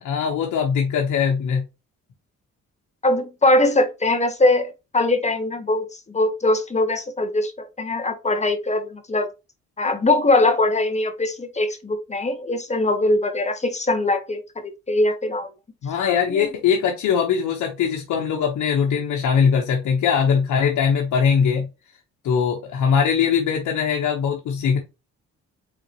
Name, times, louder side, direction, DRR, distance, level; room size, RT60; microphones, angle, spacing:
voice 1, 0.0-1.6 15.8-21.7 22.2-24.8, left 7 dB, 75° left, 1.1 m, -21 dB
voice 2, 3.0-9.3 9.8-14.4 14.9-15.5 16.3-16.5, left 2 dB, 20° left, 1.1 m, -21 dB
4.4 x 3.8 x 2.9 m
cardioid pair, 90°, 30 cm